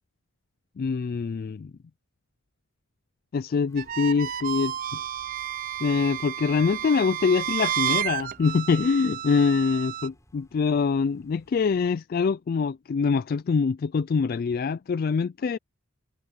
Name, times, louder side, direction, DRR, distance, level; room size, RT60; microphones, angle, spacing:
voice 1, 0.8-1.7 3.3-5.0 5.8-15.6, left 5 dB, 45° left, 0.3 m, -24 dB
sound 1, 3.7-11.9, equal, 15° left, 6.9 m, -59 dB
sound 2, 3.8-10.1, right 11 dB, 40° right, 0.4 m, -31 dB
head